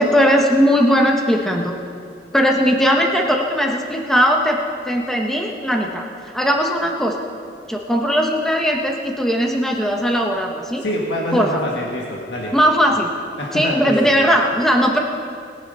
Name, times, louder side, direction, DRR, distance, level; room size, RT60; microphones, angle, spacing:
voice 1, 0.0-1.8 2.3-4.6 4.8-6.0 6.3-7.1 7.7-10.8 11.3-11.5 12.5-13.1 13.5-15.0, equal, ahead, 1 dB, 1.1 m, -18 dB
voice 2, 10.8-12.5 13.4-14.1, left 1 dB, 75° left, -2 dB, 1.5 m, -25 dB
20.5 x 7.1 x 5.5 m, 2.2 s
head